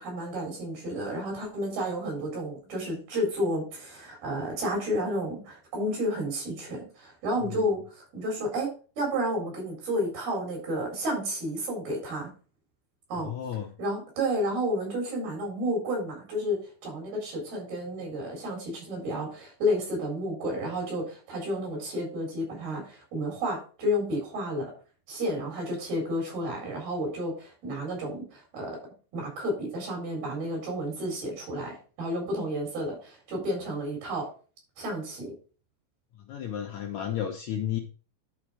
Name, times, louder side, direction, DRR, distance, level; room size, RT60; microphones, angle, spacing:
voice 1, 0.0-8.7 9.0-12.3 13.1-13.3 13.8-24.7 25.1-34.3 34.8-35.3, equal, 85° right, 0 dB, 5.9 m, -31 dB
voice 2, 13.1-13.7 36.3-37.8, left 10 dB, 75° left, 2 dB, 1.7 m, -33 dB
10.5 x 4.5 x 4.8 m, 0.37 s
omnidirectional pair, 4.2 m